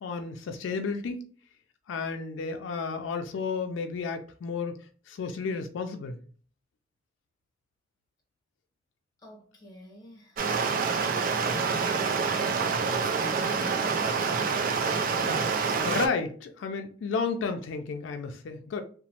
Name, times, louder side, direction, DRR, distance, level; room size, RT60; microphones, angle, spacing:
voice 1, 0.0-1.2 1.9-6.2 15.4-18.8, left 4 dB, 85° left, 0.4 m, -32 dB
voice 2, 9.2-14.3, left 1 dB, 20° left, 0.9 m, -47 dB
Stream, 10.4-16.1, right 5 dB, 45° right, 0.3 m, -27 dB
2.9 x 2.0 x 2.8 m
head